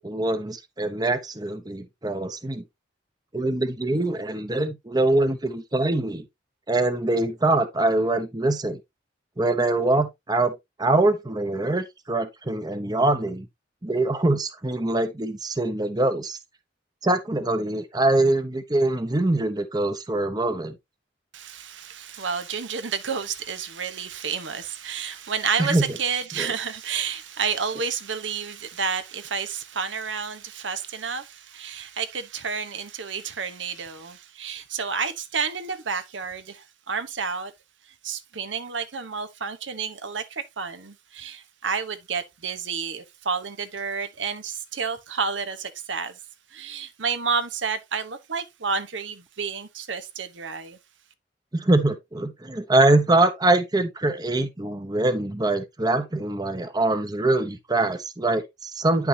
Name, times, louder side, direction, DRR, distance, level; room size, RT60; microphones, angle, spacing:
voice 1, 0.0-2.6 3.3-6.2 6.7-8.8 9.4-13.5 13.8-16.4 17.0-20.8 25.6-25.8 26.4-26.5 51.5-59.1, right 2 dB, 20° right, 0.8 m, -23 dB
voice 2, 21.3-37.5 37.9-46.2 46.5-50.8, right 5 dB, 85° right, 1.1 m, -30 dB
9.8 x 5.8 x 2.8 m
head